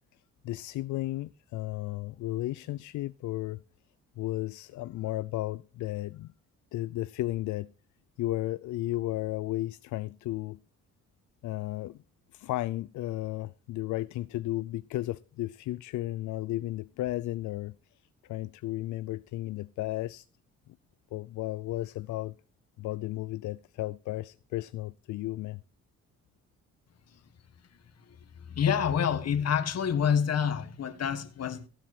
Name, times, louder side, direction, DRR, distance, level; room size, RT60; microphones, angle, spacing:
voice 1, 0.4-3.6 4.2-6.3 6.7-7.7 8.2-10.6 11.4-12.0 12.3-20.3 20.7-20.8 21.1-22.3 22.8-25.6, left 16 dB, 75° left, 0.5 m, -34 dB
voice 2, 28.4-31.7, left 7 dB, 55° left, 1.7 m, -27 dB
16.5 x 7.9 x 4.3 m
cardioid pair, 90°, 30 cm